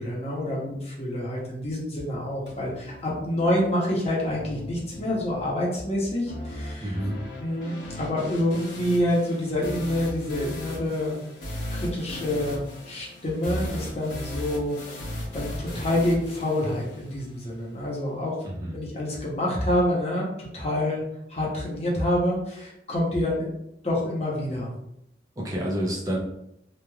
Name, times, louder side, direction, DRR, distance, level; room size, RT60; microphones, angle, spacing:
voice 1, 0.0-7.0 7.4-11.2 11.7-15.0 15.3-18.3 18.7-21.0 21.3-23.5 23.8-24.7, left 1 dB, 35° left, -4 dB, 0.8 m, -27 dB
sound 1, 2.5-17.5, left 1 dB, 80° left, 0.9 m, -37 dB
voice 2, 6.8-7.2 18.4-18.7 25.4-26.2, equal, 20° right, -3 dB, 0.4 m, -28 dB
3.1 x 2.3 x 2.3 m, 0.79 s
head